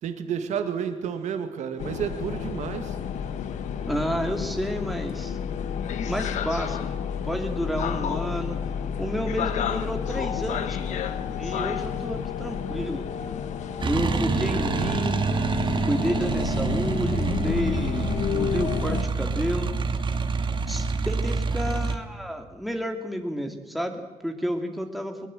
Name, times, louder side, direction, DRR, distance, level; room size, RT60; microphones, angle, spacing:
voice 1, 0.0-3.0, right 8 dB, 80° right, 7 dB, 2.1 m, -30 dB
sound 1, 1.8-19.0, left 8 dB, 80° left, 1.4 m, -30 dB
voice 2, 3.9-5.4 6.0-6.9 7.2-8.6 9.0-11.0 11.4-13.0 13.8-15.2 15.9-19.7 20.7-25.3, equal, ahead, 4 dB, 2.4 m, -30 dB
sound 2, 13.8-22.0, right 4 dB, 40° right, 1.9 m, -27 dB
21.0 x 20.0 x 7.7 m, 1.2 s
cardioid pair, 95°, 12 cm